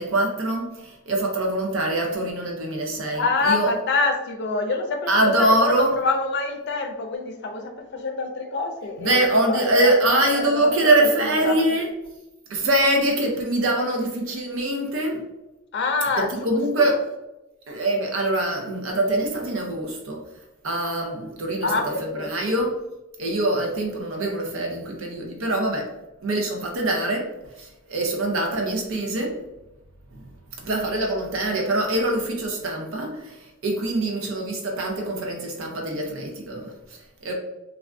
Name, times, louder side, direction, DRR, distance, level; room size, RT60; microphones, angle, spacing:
voice 1, 0.0-3.7 5.1-6.0 9.0-11.9 12.5-15.2 16.1-17.0 17.7-20.2 20.6-21.7 22.0-22.8 23.2-25.9 26.2-29.4 30.1-30.3 30.6-37.3, right 1 dB, 70° right, 0 dB, 0.6 m, -24 dB
voice 2, 3.1-9.9 10.3-10.9 11.4-11.6 15.7-17.0 21.6-22.5, left 3 dB, 55° left, 5 dB, 0.4 m, -26 dB
3.4 x 2.5 x 2.2 m, 0.97 s
head